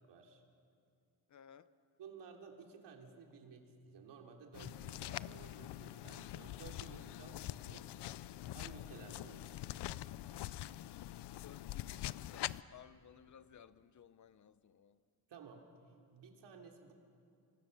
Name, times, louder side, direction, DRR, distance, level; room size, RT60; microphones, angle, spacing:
voice 1, 0.1-0.4 2.0-7.4 7.7-7.9 8.5-9.7 15.3-15.7 16.1-16.9, right 5 dB, 80° right, 2 dB, 3.6 m, -55 dB
voice 2, 1.3-1.7 11.4-15.0, left 8 dB, 45° left, 14 dB, 0.8 m, -59 dB
sound 1, 4.5-12.6, left 14 dB, 80° left, 0.6 m, -44 dB
29.5 x 26.0 x 6.9 m, 2.4 s
cardioid pair, 155°, 41 cm